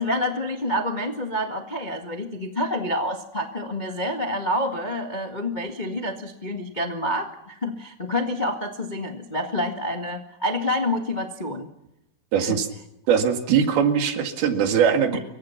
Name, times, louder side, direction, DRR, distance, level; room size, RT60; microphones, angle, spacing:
voice 1, 0.0-11.7 12.4-12.6 15.1-15.2, left 1 dB, 85° left, 4 dB, 0.4 m, -28 dB
voice 2, 12.3-12.7 13.1-15.2, right 7 dB, 75° right, 6 dB, 4.0 m, -21 dB
27.5 x 23.5 x 5.9 m, 0.83 s
omnidirectional pair, 4.4 m